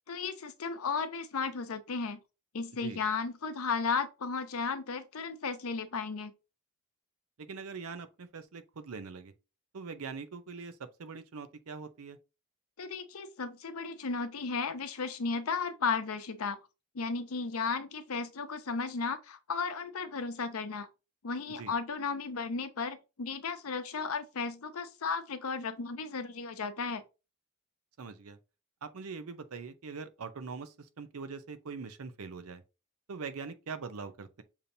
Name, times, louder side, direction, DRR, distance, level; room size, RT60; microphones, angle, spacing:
voice 1, 0.1-2.2 2.5-6.3 12.8-16.6 16.9-20.9 21.2-27.0, left 5 dB, 75° left, 0.6 m, -34 dB
voice 2, 7.4-9.3 9.7-12.2 21.6-21.7 28.0-28.4 28.8-32.6 33.1-34.4, right 5 dB, 75° right, 0.6 m, -42 dB
6.7 x 2.8 x 2.7 m
head